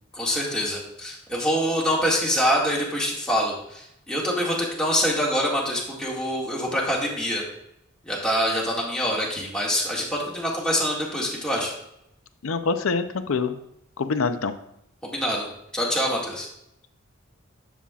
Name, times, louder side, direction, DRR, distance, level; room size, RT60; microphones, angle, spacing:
voice 1, 0.1-7.4 8.0-11.7 15.0-15.5 15.7-16.5, equal, 5° left, -5 dB, 2.0 m, -25 dB
voice 2, 12.4-13.6 14.0-14.5, left 4 dB, 80° left, 10 dB, 0.6 m, -25 dB
11.0 x 7.2 x 2.4 m, 0.80 s
head